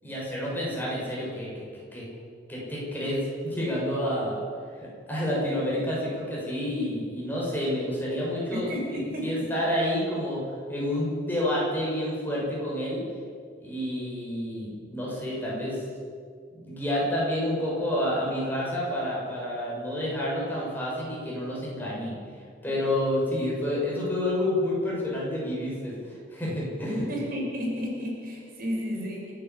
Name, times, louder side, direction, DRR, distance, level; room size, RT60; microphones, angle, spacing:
voice 1, 0.0-2.0 2.5-4.4 4.8-13.0 13.6-15.8 16.5-22.2 22.6-27.1 28.9-29.1, left 1 dB, 10° left, -5 dB, 6.9 m, -29 dB
voice 2, 8.5-9.2 27.1-29.3, equal, 50° right, -1 dB, 5.1 m, -32 dB
29.5 x 10.5 x 8.5 m, 2.2 s
head